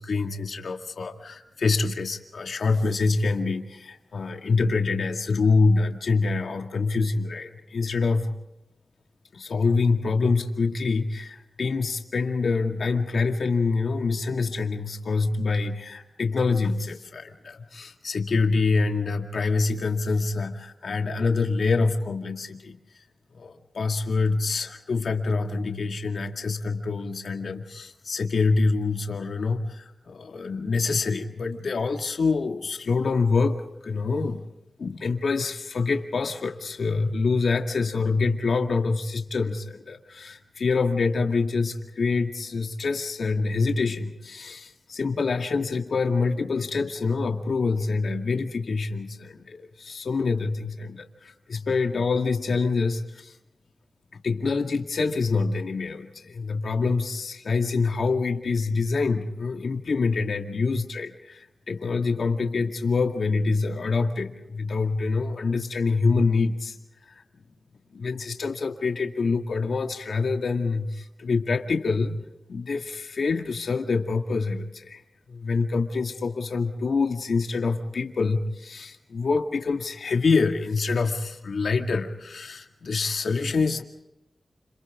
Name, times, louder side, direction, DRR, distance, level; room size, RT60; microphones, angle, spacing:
voice 1, 0.0-8.3 9.3-22.8 23.3-34.5 34.8-53.4 54.2-66.8 67.1-67.2 67.9-72.2 72.5-75.0 75.3-83.8, left 4 dB, 80° left, 4 dB, 2.0 m, -26 dB
30.0 x 28.5 x 3.7 m, 0.89 s
cardioid pair, 50°, 0 cm